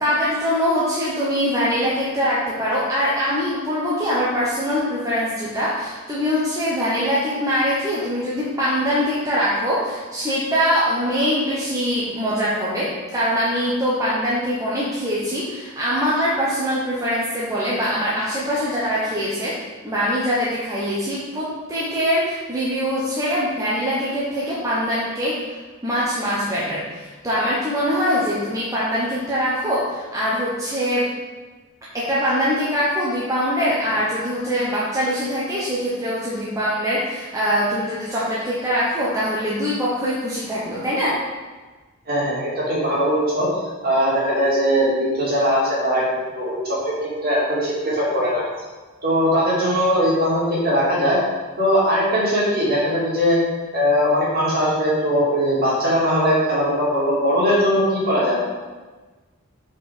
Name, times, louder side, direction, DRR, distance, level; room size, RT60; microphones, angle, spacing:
voice 1, 0.0-19.6 19.8-25.6 25.8-31.1 31.9-41.2, equal, 15° right, -8 dB, 0.9 m, -23 dB
voice 2, 42.1-43.5 43.8-48.4 49.0-51.2 51.6-53.4 53.7-58.3, equal, 45° right, -7 dB, 2.1 m, -20 dB
4.8 x 4.8 x 5.0 m, 1.3 s
head